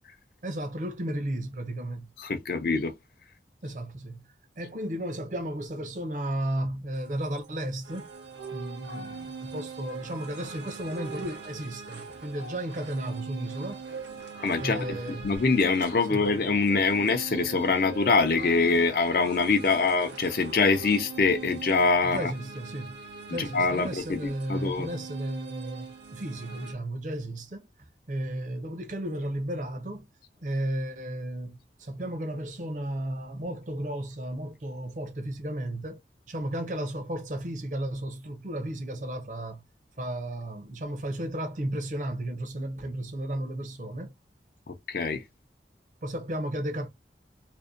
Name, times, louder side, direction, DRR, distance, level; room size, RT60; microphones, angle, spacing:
voice 1, 0.4-2.1 3.6-8.1 8.5-13.8 14.6-15.4 16.1-16.2 22.0-23.0 23.3-27.7 28.1-30.1 30.4-36.0 36.3-39.6 40.0-44.1 46.0-46.9, right 1 dB, 45° right, 0.5 m, -34 dB
voice 2, 2.2-2.9 14.4-15.0 15.2-22.3 23.3-24.9 44.7-45.2, left 4 dB, 55° left, 0.4 m, -24 dB
sound 1, 6.9-26.7, right 4 dB, 85° right, 0.8 m, -42 dB
2.5 x 2.1 x 2.4 m
head